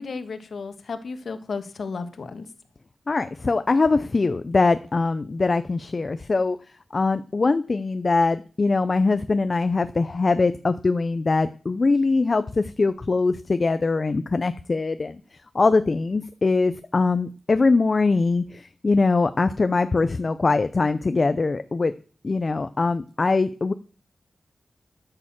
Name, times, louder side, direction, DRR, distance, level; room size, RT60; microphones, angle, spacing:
voice 1, 0.0-2.5, left 4 dB, 70° left, 9 dB, 1.6 m, -33 dB
voice 2, 3.1-6.6 6.9-15.2 15.5-21.9 22.2-23.7, left 3 dB, 40° left, 11 dB, 0.6 m, -22 dB
13.0 x 6.8 x 7.4 m, 0.39 s
wide cardioid pair, 150°, 0 cm